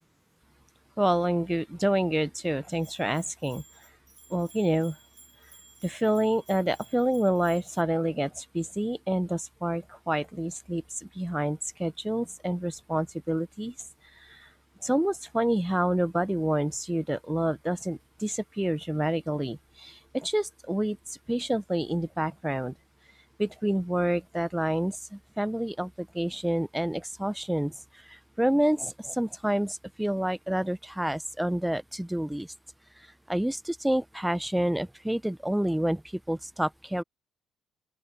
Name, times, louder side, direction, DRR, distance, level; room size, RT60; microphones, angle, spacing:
voice 1, 1.0-3.6 4.3-5.0 5.8-13.7 14.2-14.5 14.8-21.0 21.3-22.7 23.4-27.7 28.1-32.5 33.3-37.0, right 1 dB, 5° right, 1.1 m, -28 dB
Bell, 2.7-7.8, right 3 dB, 30° right, 7.6 m, -55 dB
open air
hypercardioid pair, 55°, 0 cm